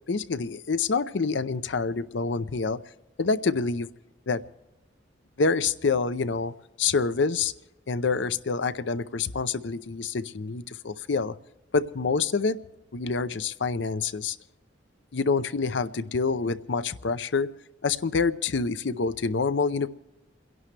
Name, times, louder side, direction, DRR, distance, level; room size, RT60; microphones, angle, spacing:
voice 1, 0.1-2.8 3.2-3.9 4.3-4.4 5.4-6.5 6.8-7.5 7.9-11.3 11.7-12.6 12.9-14.4 15.1-17.5 17.8-19.9, left 4 dB, 65° left, 14 dB, 0.6 m, -27 dB
29.5 x 11.0 x 3.3 m, 1.1 s
head